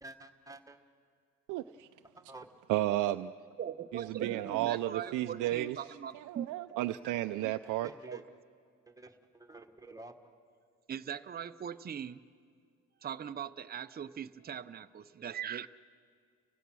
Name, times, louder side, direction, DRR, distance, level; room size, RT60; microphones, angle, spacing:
voice 1, 0.0-0.8 2.2-2.5 4.4-4.6 7.8-8.2 8.9-10.3, right 2 dB, 10° right, 5 dB, 1.5 m, -50 dB
voice 2, 1.5-1.9 2.7-3.3 3.9-5.8 6.1-7.9, right 15 dB, 90° right, 8 dB, 0.5 m, -33 dB
voice 3, 3.6-7.1 8.1-8.2 10.9-12.2 13.0-15.7, right 9 dB, 30° right, 11 dB, 0.6 m, -41 dB
30.0 x 16.5 x 6.2 m, 2.2 s
cardioid pair, 90°, 30 cm